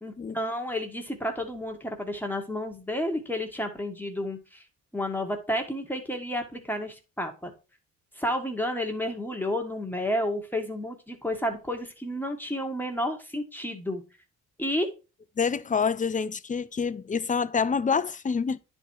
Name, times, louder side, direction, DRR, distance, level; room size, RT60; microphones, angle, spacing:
voice 1, 0.0-4.6 4.9-7.5 8.1-14.0 14.6-14.9, left 1 dB, 5° left, 1.7 m, -31 dB
voice 2, 15.4-18.6, left 5 dB, 25° left, 0.6 m, -27 dB
9.9 x 4.4 x 4.7 m
cardioid pair, 90°, 30 cm